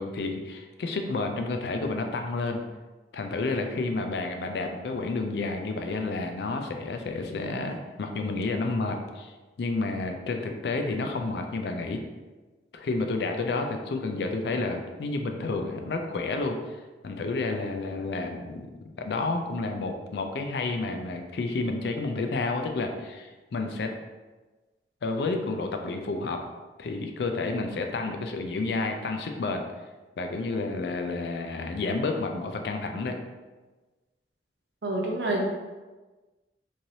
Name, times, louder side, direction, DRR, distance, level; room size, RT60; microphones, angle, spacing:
voice 1, 0.0-2.6 3.1-9.3 9.6-12.0 12.7-23.9 25.0-26.4 26.8-29.6 30.2-33.2, left 3 dB, 65° left, 4 dB, 0.4 m, -30 dB
voice 2, 34.8-35.5, right 1 dB, 70° right, -1 dB, 0.6 m, -27 dB
3.1 x 2.6 x 2.7 m, 1.2 s
head